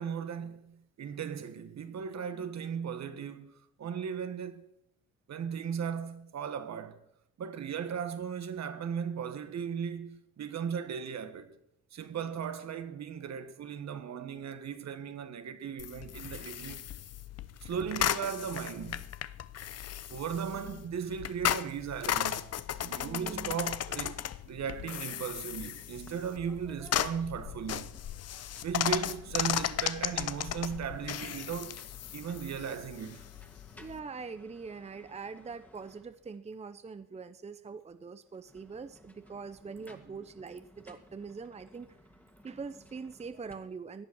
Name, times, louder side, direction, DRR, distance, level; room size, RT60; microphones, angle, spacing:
voice 1, 0.0-3.5 3.8-4.7 5.3-7.0 7.4-11.6 11.9-16.8 17.6-19.1 20.1-27.9 28.6-31.8 32.1-33.3 39.9-40.0, right 7 dB, 60° right, 1.6 m, -37 dB
sound 1, 15.8-34.0, left 11 dB, 55° left, 0.8 m, -36 dB
voice 2, 23.0-23.6 33.7-42.0 42.4-44.1, right 5 dB, 20° right, 0.7 m, -43 dB
sound 2, 26.1-26.2 26.5-28.0 28.4-36.5 38.3-43.5, left 1 dB, 5° left, 2.2 m, -58 dB
17.5 x 10.5 x 6.3 m
cardioid pair, 90°, 30 cm